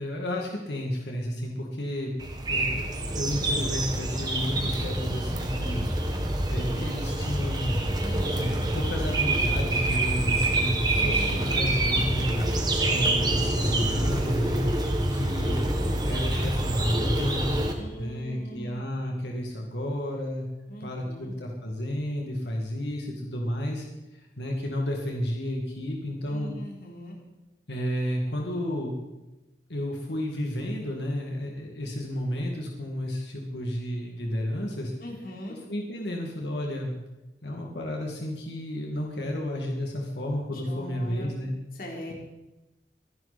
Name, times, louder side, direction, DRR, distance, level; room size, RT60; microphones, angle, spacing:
voice 1, 0.0-2.1 2.5-5.9 6.5-7.9 8.3-12.5 12.9-15.6 16.0-17.6 18.0-20.5 20.8-23.9 24.1-26.5 27.7-28.9 29.7-34.9 35.7-36.9 37.4-41.5, equal, 85° left, 0 dB, 2.4 m, -31 dB
sound 1, 2.2-17.7, right 1 dB, 25° right, 1.5 m, -26 dB
voice 2, 8.0-8.3 10.9-11.5 11.9-13.1 17.8-18.8 20.7-21.3 26.3-27.2 35.0-35.6 40.5-41.3 41.7-42.1, equal, 55° left, -1 dB, 3.7 m, -41 dB
24.0 x 11.0 x 4.4 m, 1.0 s
head